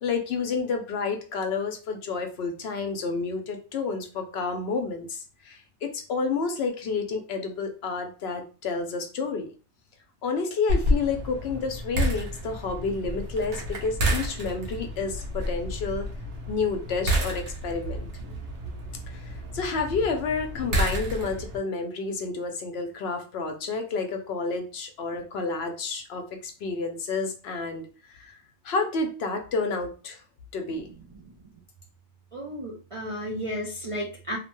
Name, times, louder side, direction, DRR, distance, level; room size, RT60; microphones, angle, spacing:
voice 1, 0.0-5.2 5.4-9.5 10.2-16.1 16.5-18.1 19.1-28.3 28.6-30.2 30.5-30.9, left 4 dB, 70° left, 5 dB, 0.8 m, -30 dB
sound 1, 10.7-21.6, equal, 80° right, 1.1 m, -30 dB
voice 2, 30.7-31.5 32.3-34.4, equal, 50° right, -2 dB, 0.4 m, -34 dB
2.7 x 2.1 x 3.0 m, 0.36 s
omnidirectional pair, 1.2 m